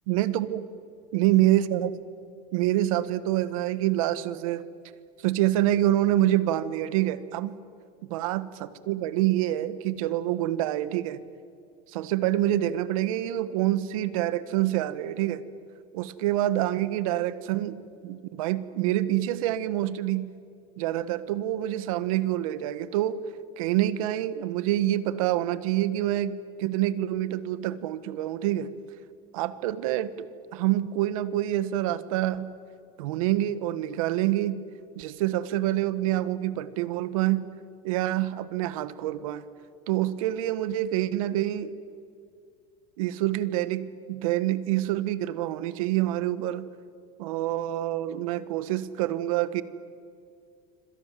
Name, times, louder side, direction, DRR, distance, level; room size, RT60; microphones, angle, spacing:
voice 1, 0.1-0.6 1.1-2.0 2.5-4.6 5.2-7.6 8.1-11.2 11.9-15.4 15.9-20.3 20.8-23.2 23.6-28.7 29.3-30.3 30.5-32.5 33.0-34.6 34.9-37.5 37.8-39.4 39.9-41.7 43.0-46.7 47.2-49.6, right 14 dB, 80° right, 14 dB, 1.5 m, -26 dB
27.5 x 25.5 x 7.6 m, 2.3 s
cardioid pair, 175°, 18 cm